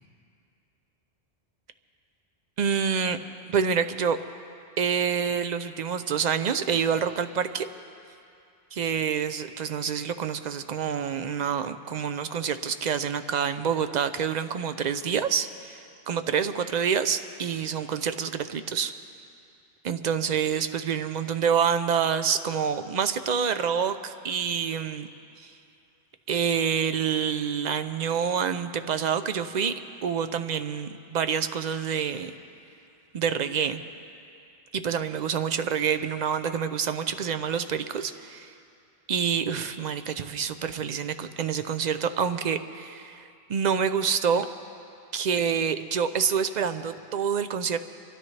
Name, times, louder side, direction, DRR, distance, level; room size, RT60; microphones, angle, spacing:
voice 1, 2.6-3.2 3.5-4.2 4.8-7.7 8.7-15.8 16.1-18.9 19.8-25.1 26.3-29.7 30.0-32.3 33.1-33.8 34.7-38.5 39.1-44.5 45.1-47.8, right 7 dB, 50° right, 10 dB, 0.6 m, -27 dB
25.5 x 13.0 x 3.2 m, 2.6 s
omnidirectional pair, 1.1 m